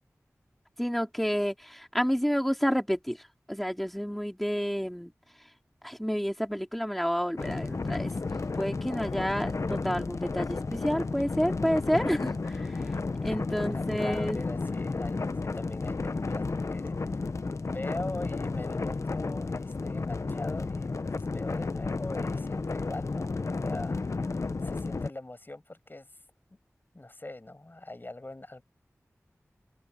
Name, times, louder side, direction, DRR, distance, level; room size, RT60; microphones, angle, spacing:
voice 1, 0.8-5.1 5.8-8.1 8.5-13.0 13.2-14.4, equal, 5° left, 3.8 m, -30 dB
sound 1, 7.4-25.1, left 3 dB, 65° left, 0.9 m, -32 dB
voice 2, 13.2-17.3 17.7-26.1 26.9-28.6, left 2 dB, 40° left, 6.3 m, -42 dB
wide cardioid pair, 45°, 6 cm